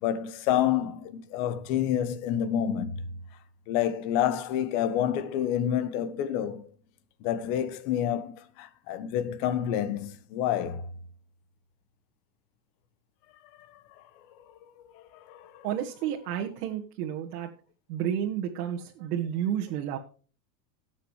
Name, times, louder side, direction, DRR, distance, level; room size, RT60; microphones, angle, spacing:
voice 1, 0.0-3.0 3.7-6.7 7.2-10.9 13.6-14.0 14.5-15.7, left 10 dB, 50° left, 1.3 m, -29 dB
voice 2, 15.6-17.5 17.9-20.0, right 10 dB, 70° right, 1.8 m, -31 dB
17.5 x 7.5 x 3.2 m
supercardioid pair, 150°, 50 cm